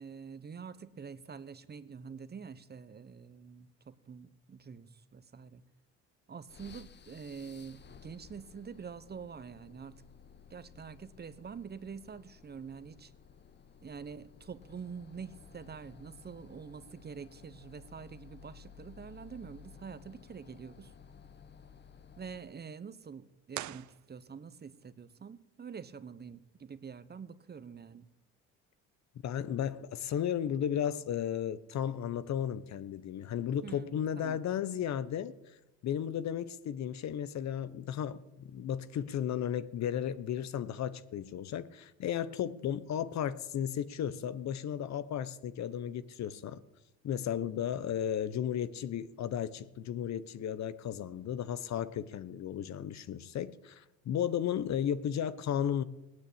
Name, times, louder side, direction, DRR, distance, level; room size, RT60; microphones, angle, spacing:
voice 1, 0.0-5.6 6.3-10.0 10.5-13.1 13.8-20.9 22.2-28.1 33.6-34.4, right 6 dB, 30° right, 1.1 m, -46 dB
sound 1, 6.5-22.6, left 7 dB, 30° left, 1.0 m, -56 dB
sound 2, 23.5-24.7, right 15 dB, 60° right, 0.8 m, -43 dB
voice 2, 29.2-35.3 35.8-46.6 47.0-55.8, left 9 dB, 55° left, 1.1 m, -34 dB
17.0 x 9.7 x 8.7 m
supercardioid pair, 75°, 34 cm